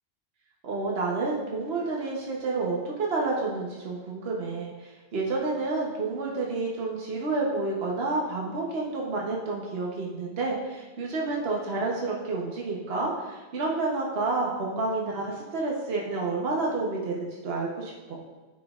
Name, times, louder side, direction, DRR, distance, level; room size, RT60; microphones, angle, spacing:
voice 1, 0.6-18.2, right 3 dB, 65° right, -2 dB, 1.2 m, -29 dB
13.0 x 5.2 x 2.4 m, 1.2 s
omnidirectional pair, 1.1 m